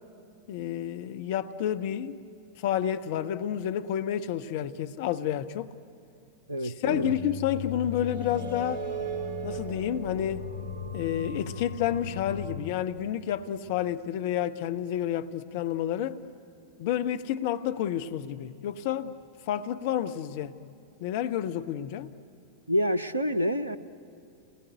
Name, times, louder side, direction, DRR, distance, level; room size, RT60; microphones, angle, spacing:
voice 1, 0.5-2.2 2.6-5.7 6.6-8.8 9.4-10.5 10.9-16.2 16.8-19.2 19.5-20.5 21.0-22.1, left 10 dB, 50° left, 0.8 m, -30 dB
voice 2, 6.5-7.2 22.7-23.8, equal, 80° right, 0.7 m, -27 dB
sound 1, 6.9-12.6, left 1 dB, 40° right, 3.5 m, -36 dB
29.5 x 20.0 x 9.3 m
figure-of-eight pair, 90°, 0 cm